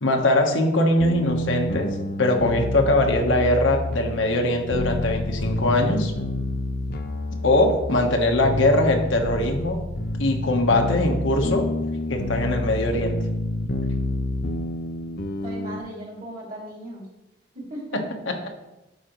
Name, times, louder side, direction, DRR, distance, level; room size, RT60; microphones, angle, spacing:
voice 1, 0.0-6.1 7.4-9.8 10.2-11.7 12.1-13.2 17.9-18.5, left 1 dB, 85° left, 2 dB, 1.2 m, -22 dB
sound 1, 1.0-15.8, left 1 dB, 55° left, 0.6 m, -28 dB
voice 2, 15.4-17.1 17.5-18.0, right 1 dB, 45° right, -4 dB, 2.6 m, -37 dB
12.0 x 5.0 x 3.1 m, 0.99 s
head